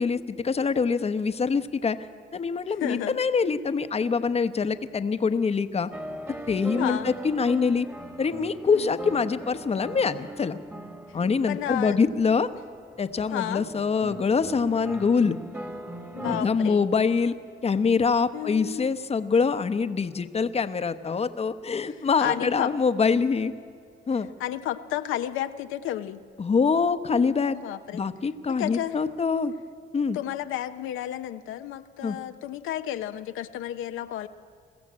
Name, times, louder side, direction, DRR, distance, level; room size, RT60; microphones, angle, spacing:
voice 1, 0.0-2.0 2.3-5.9 6.5-7.9 8.2-10.6 11.1-12.5 13.0-15.4 16.2-17.3 17.6-23.5 24.1-24.3 26.4-27.6 27.9-29.5 29.9-30.2 32.0-32.2, left 5 dB, 30° left, 11 dB, 0.9 m, -24 dB
voice 2, 2.8-3.2 6.8-7.1 8.7-9.0 11.1-11.2 11.5-12.0 13.3-13.6 16.1-16.9 18.3-18.9 21.9-22.7 24.4-26.2 27.5-28.0 28.6-29.0 30.1-34.3, left 12 dB, 90° left, 9 dB, 0.7 m, -32 dB
sound 1, 5.9-16.6, right 1 dB, 10° right, 1.7 m, -40 dB
21.5 x 15.0 x 8.6 m, 2.3 s
cardioid pair, 90°, 20 cm